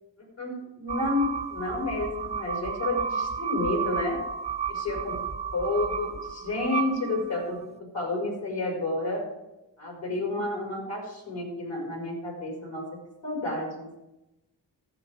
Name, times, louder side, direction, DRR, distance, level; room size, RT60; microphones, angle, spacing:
voice 1, 0.2-4.2 4.7-5.2 5.5-9.2 9.8-12.8 13.2-13.9, left 2 dB, 80° left, 0 dB, 5.1 m, -30 dB
sound 1, 0.9-7.6, right 7 dB, 15° right, 0.5 m, -32 dB
13.5 x 7.7 x 5.0 m, 0.97 s
cardioid pair, 75°, 44 cm